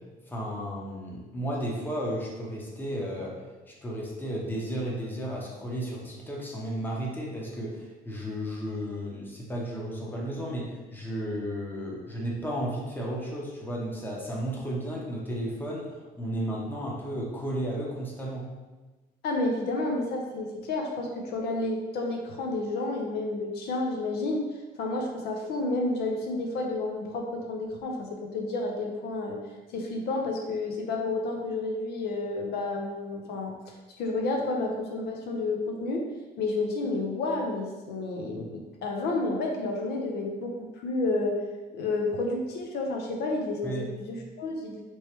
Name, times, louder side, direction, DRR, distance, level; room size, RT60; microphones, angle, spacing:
voice 1, 0.3-18.4 43.6-43.8, equal, 10° left, -3 dB, 0.8 m, -33 dB
voice 2, 19.2-24.5 24.8-29.4 29.7-36.0 36.4-41.4 41.7-43.7 44.0-44.8, left 2 dB, 70° left, 1 dB, 0.6 m, -30 dB
3.1 x 3.1 x 2.9 m, 1.2 s
cardioid pair, 110°, 17 cm